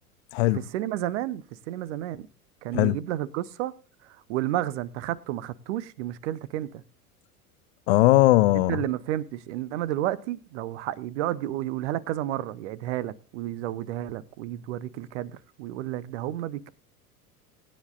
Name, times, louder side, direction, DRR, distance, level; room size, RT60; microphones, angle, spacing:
voice 1, 0.5-2.3 2.6-3.7 4.0-6.8 8.5-16.7, right 13 dB, 50° right, 0.9 m, -31 dB
voice 2, 7.9-8.8, left 18 dB, 45° left, 0.6 m, -19 dB
20.0 x 9.8 x 2.5 m
figure-of-eight pair, 85°, 45 cm